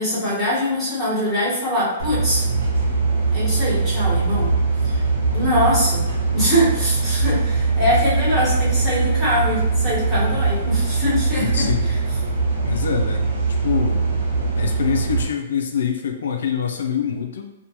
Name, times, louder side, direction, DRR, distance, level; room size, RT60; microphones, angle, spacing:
voice 1, 0.0-2.4 3.3-4.5 4.8-5.0 5.3-6.1 6.3-11.9, equal, 10° right, -11 dB, 1.3 m, -22 dB
sound 1, 2.0-15.2, right 3 dB, 75° right, 1.0 m, -21 dB
voice 2, 11.4-11.9 12.6-13.3 13.6-14.0 14.6-17.5, left 7 dB, 80° left, 3 dB, 0.3 m, -25 dB
2.5 x 2.2 x 2.8 m, 0.98 s
hypercardioid pair, 145°, 0 cm